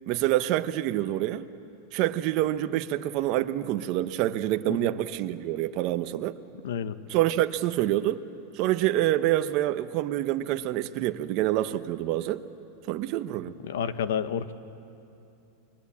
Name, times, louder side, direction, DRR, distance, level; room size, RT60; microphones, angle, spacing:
voice 1, 0.1-1.5 1.9-6.4 7.1-8.2 8.5-12.4 12.9-13.5, right 14 dB, 40° right, 0.8 m, -27 dB
voice 2, 6.6-6.9 13.6-14.5, left 8 dB, 85° left, 1.2 m, -30 dB
28.5 x 22.0 x 8.5 m
supercardioid pair, 165°, 0 cm